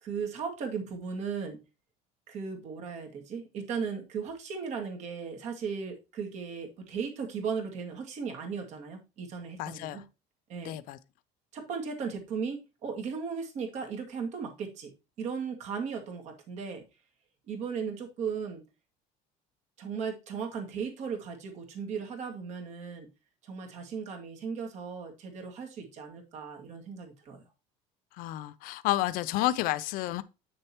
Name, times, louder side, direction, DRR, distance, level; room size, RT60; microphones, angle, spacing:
voice 1, 0.0-1.6 2.3-10.0 10.5-10.8 11.5-14.9 15.2-16.8 17.5-18.6 19.8-23.1 23.4-27.4, right 6 dB, 45° right, 2.1 m, -36 dB
voice 2, 9.6-10.0 10.6-11.0 28.2-30.2, left 15 dB, 60° left, 0.6 m, -30 dB
8.3 x 6.6 x 3.0 m
cardioid pair, 150°, 16 cm